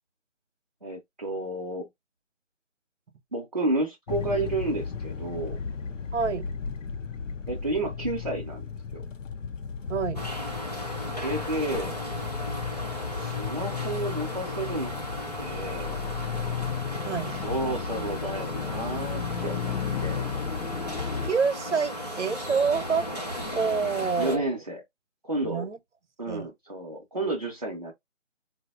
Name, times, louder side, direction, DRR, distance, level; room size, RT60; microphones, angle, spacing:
voice 1, 0.8-1.9 3.3-5.6 7.5-9.0 11.1-12.0 13.1-15.0 15.4-16.0 17.3-19.7 20.0-20.3 24.2-24.8 25.2-25.7 26.2-27.9, right 2 dB, 35° right, 0.5 m, -31 dB
sound 1, 4.1-21.3, left 6 dB, 80° left, 0.6 m, -34 dB
voice 2, 6.1-6.5 9.9-10.2 17.0-17.3 21.2-23.0 23.5-24.4 25.4-25.8 26.3-26.5, right 5 dB, 65° right, 0.8 m, -27 dB
sound 2, 10.1-24.4, equal, 35° left, 0.5 m, -36 dB
4.8 x 2.0 x 2.3 m
figure-of-eight pair, 170°, 38 cm